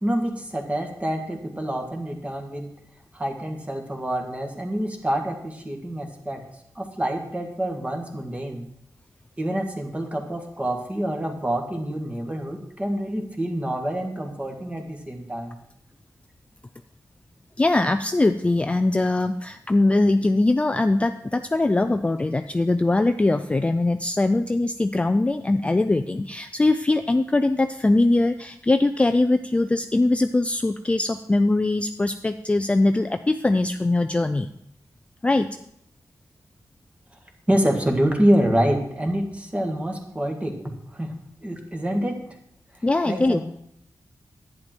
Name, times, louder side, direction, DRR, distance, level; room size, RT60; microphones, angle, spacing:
voice 1, 0.0-2.7 3.1-6.4 6.7-8.7 9.4-15.6 37.5-40.6 40.9-42.2 43.0-43.4, right 1 dB, 20° right, 2 dB, 1.7 m, -26 dB
voice 2, 17.6-34.5 35.2-35.5 42.8-43.4, left 2 dB, 15° left, 8 dB, 0.3 m, -21 dB
11.0 x 9.1 x 4.4 m, 0.74 s
wide cardioid pair, 120°, 7 cm